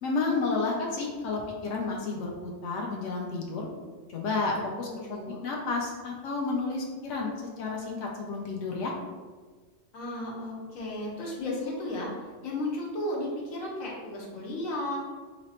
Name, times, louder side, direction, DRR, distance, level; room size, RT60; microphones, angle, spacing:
voice 1, 0.0-3.7 4.1-4.9 5.4-8.9, left 3 dB, 70° left, -1 dB, 0.9 m, -31 dB
voice 2, 4.8-5.4 9.9-15.0, left 1 dB, 85° left, -3 dB, 1.2 m, -34 dB
3.2 x 2.0 x 4.1 m, 1.4 s
omnidirectional pair, 1.4 m